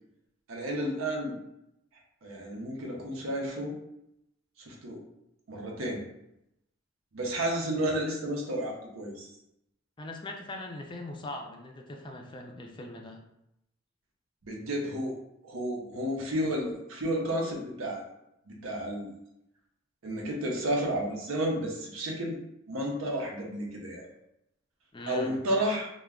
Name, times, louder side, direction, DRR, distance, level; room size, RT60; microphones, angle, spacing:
voice 1, 0.5-1.4 2.2-3.8 4.6-5.0 5.5-6.0 7.1-9.3 14.4-15.2 15.4-18.0 18.5-19.1 20.0-22.4 22.7-24.1 25.1-25.9, right 1 dB, 85° right, 0 dB, 0.7 m, -32 dB
voice 2, 10.0-13.2 24.9-25.4, left 1 dB, 25° left, 2 dB, 0.3 m, -41 dB
2.2 x 2.1 x 3.5 m, 0.82 s
head